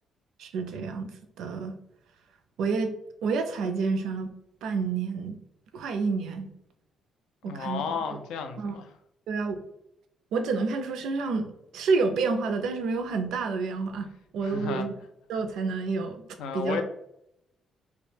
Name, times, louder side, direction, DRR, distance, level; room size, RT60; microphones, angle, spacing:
voice 1, 0.4-1.1 1.4-1.8 2.6-2.9 3.2-4.3 4.6-5.4 5.7-6.5 7.4-7.8 8.6-8.7 9.3-9.6 10.3-14.1 14.3-14.9 15.3-16.2 16.5-16.8, right 4 dB, 80° right, 7 dB, 0.3 m, -29 dB
voice 2, 7.4-8.9 14.4-14.9 16.4-16.8, left 5 dB, 90° left, 6 dB, 0.3 m, -33 dB
2.2 x 2.1 x 3.1 m, 0.79 s
cardioid pair, 90°, 0 cm